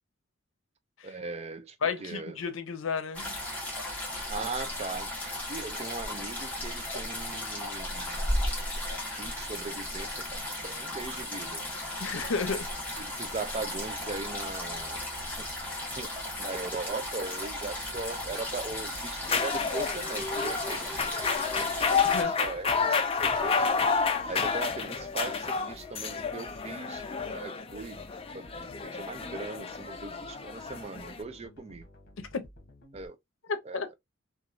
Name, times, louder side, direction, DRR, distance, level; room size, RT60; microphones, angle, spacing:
voice 1, 1.0-2.4 4.3-5.1 5.5-8.3 9.2-11.6 13.0-15.0 15.4-15.5 16.0-16.1 16.4-21.0 21.6-23.6 24.2-28.0 28.3-28.5 28.8-31.9 32.9-33.2 33.7-33.8, right 3 dB, 35° right, 0.4 m, -39 dB
voice 2, 1.8-3.4 12.0-12.7 22.0-22.3 32.2-32.5 33.5-33.9, left 5 dB, 90° left, 0.6 m, -32 dB
sound 1, 3.1-22.2, left 1 dB, 10° left, 1.1 m, -35 dB
sound 2, 17.6-33.1, left 1 dB, 55° left, 1.0 m, -53 dB
sound 3, 19.2-31.2, left 5 dB, 30° left, 0.4 m, -30 dB
3.0 x 2.4 x 2.4 m
head